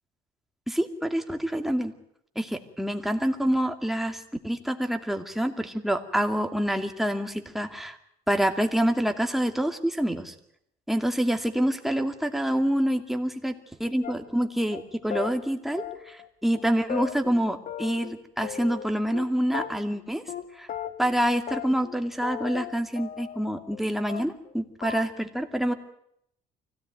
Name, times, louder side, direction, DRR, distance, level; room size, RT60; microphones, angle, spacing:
voice 1, 0.7-1.9 2.4-8.0 8.3-10.3 10.9-13.5 13.8-20.2 20.6-20.7 21.0-25.7, equal, ahead, 5 dB, 2.4 m, -27 dB
sound 1, 14.0-14.4 14.7-14.8 15.1-15.3 15.8-16.3 16.5-16.6 16.9-18.1 18.4-19.3 19.5-20.0 20.3-20.4 20.7-21.2 21.5-22.0 22.2-23.8 24.1-24.5 24.8-25.0, left 9 dB, 50° left, 1.8 m, -36 dB
24.0 x 17.0 x 9.3 m, 0.75 s
cardioid pair, 110°, 17 cm